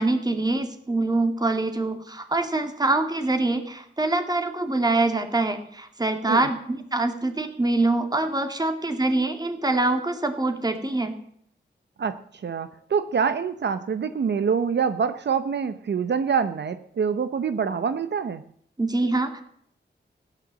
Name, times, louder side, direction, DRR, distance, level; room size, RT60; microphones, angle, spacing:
voice 1, 0.0-11.2 18.8-19.4, right 2 dB, 20° right, 6 dB, 2.3 m, -24 dB
voice 2, 12.0-18.4, right 6 dB, 70° right, 11 dB, 0.8 m, -25 dB
16.0 x 10.0 x 7.5 m, 0.66 s
wide cardioid pair, 120°, 19 cm